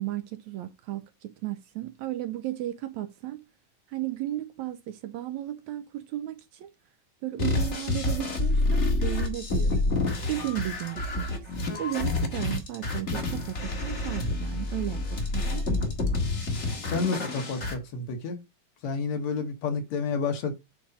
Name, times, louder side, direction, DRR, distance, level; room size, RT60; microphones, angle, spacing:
voice 1, 0.0-3.4 3.9-6.7 7.2-9.8 10.3-11.5 11.8-15.9, right 14 dB, 75° right, 1.8 m, -34 dB
sound 1, 7.4-17.8, left 2 dB, 30° left, 1.5 m, -28 dB
voice 2, 16.8-18.4 18.8-20.5, left 4 dB, 65° left, 2.4 m, -30 dB
8.5 x 3.9 x 5.2 m
omnidirectional pair, 3.6 m